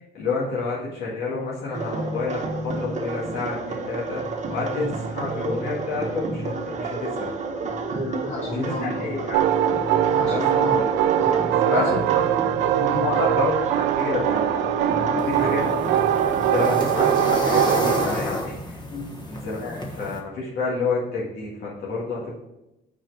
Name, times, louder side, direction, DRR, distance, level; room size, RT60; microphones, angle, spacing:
voice 1, 0.1-7.3 8.4-9.4 10.3-10.9 11.6-12.5 13.0-15.6 15.9-16.0 16.5-18.8 19.3-22.4, left 3 dB, 80° left, -6 dB, 1.9 m, -29 dB
sound 1, 1.7-18.2, right 3 dB, 45° right, 1.2 m, -30 dB
voice 2, 7.9-9.1 10.1-10.8 11.1-12.0 12.8-13.0 15.0-15.4 18.9-19.1, left 1 dB, 45° left, -4 dB, 3.0 m, -31 dB
sound 2, 9.3-18.1, right 11 dB, 90° right, 0.4 m, -22 dB
sound 3, 15.2-20.2, left 1 dB, 25° left, 1.2 m, -31 dB
6.1 x 4.4 x 6.0 m, 0.91 s
cardioid pair, 110°, 17 cm